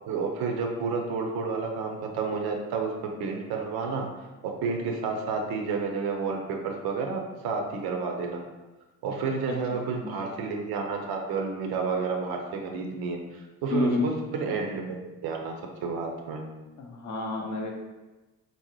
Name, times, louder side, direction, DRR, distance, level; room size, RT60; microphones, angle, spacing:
voice 1, 0.1-2.9 3.2-4.1 4.4-8.4 9.0-16.4, right 4 dB, 50° right, 2 dB, 0.6 m, -30 dB
voice 2, 9.5-10.1 13.7-14.1 16.8-17.7, left 2 dB, 35° left, 1 dB, 0.6 m, -30 dB
4.0 x 2.1 x 2.9 m, 1.1 s
figure-of-eight pair, 50°, 49 cm